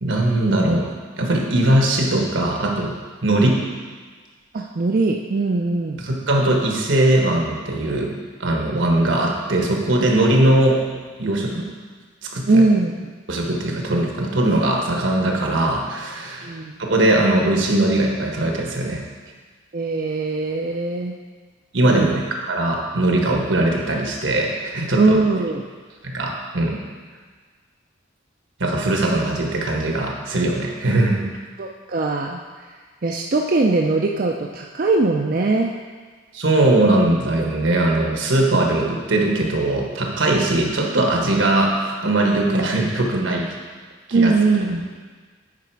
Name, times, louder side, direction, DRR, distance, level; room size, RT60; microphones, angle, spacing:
voice 1, 0.0-2.9 3.2-3.7 6.0-8.1 8.4-10.8 11.2-11.7 12.2-12.6 13.3-19.0 21.7-25.2 26.0-26.8 28.6-31.3 36.3-43.5 44.1-44.3 44.7-44.8, right 1 dB, 80° right, 0 dB, 1.4 m, -20 dB
voice 2, 4.5-6.0 12.5-12.9 16.4-16.8 19.7-21.1 21.9-22.2 25.0-25.6 31.6-32.4 33.0-35.7 44.1-44.9, right 3 dB, 45° right, 1 dB, 0.4 m, -20 dB
9.6 x 5.1 x 4.6 m, 1.5 s
head